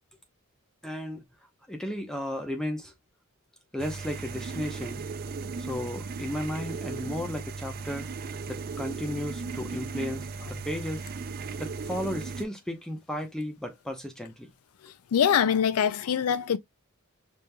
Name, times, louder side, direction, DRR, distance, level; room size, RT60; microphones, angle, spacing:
voice 1, 0.8-1.3 1.7-2.9 3.7-5.0 5.6-8.1 8.5-11.1 11.6-14.5, left 1 dB, 5° left, 0.7 m, -34 dB
sound 1, 3.8-12.4, right 4 dB, 45° right, 0.4 m, -36 dB
voice 2, 14.8-16.6, left 8 dB, 90° left, 0.4 m, -24 dB
5.1 x 3.0 x 2.2 m
head